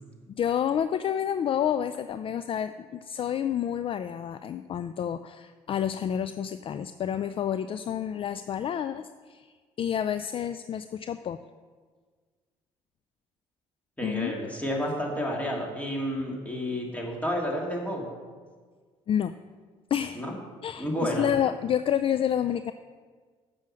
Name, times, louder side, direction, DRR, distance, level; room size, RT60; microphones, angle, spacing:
voice 1, 0.4-11.4 14.0-14.3 19.1-19.3 19.9-20.2 20.6-22.7, left 9 dB, 45° left, 11 dB, 0.4 m, -29 dB
voice 2, 14.0-18.1 20.1-20.3 20.8-21.3, equal, 10° left, -1 dB, 2.7 m, -30 dB
7.5 x 6.1 x 7.5 m, 1.5 s
supercardioid pair, 70°, 13 cm